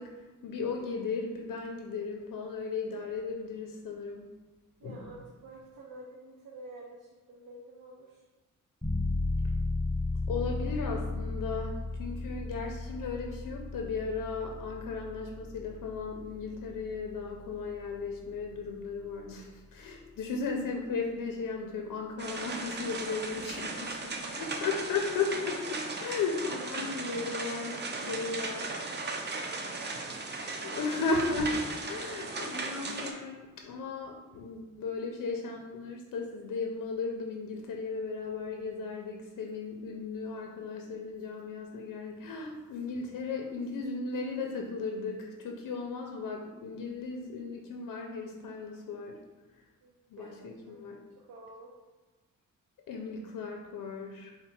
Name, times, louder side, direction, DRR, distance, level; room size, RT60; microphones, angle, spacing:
voice 1, 0.0-4.3 4.8-5.0 10.3-28.7 30.6-49.2 50.1-51.0 52.9-54.4, left 4 dB, 75° left, 2 dB, 0.5 m, -36 dB
voice 2, 4.8-8.2 23.2-23.3 27.8-30.0 34.3-34.4 49.8-50.4 50.7-50.8 51.3-51.7, right 2 dB, 85° right, -2 dB, 0.6 m, -50 dB
sound 1, 8.8-19.4, left 2 dB, 5° right, 0.9 m, -35 dB
sound 2, 22.2-33.1, right 3 dB, 35° right, 0.5 m, -37 dB
4.4 x 2.1 x 4.0 m, 1.2 s
cardioid pair, 100°, 33 cm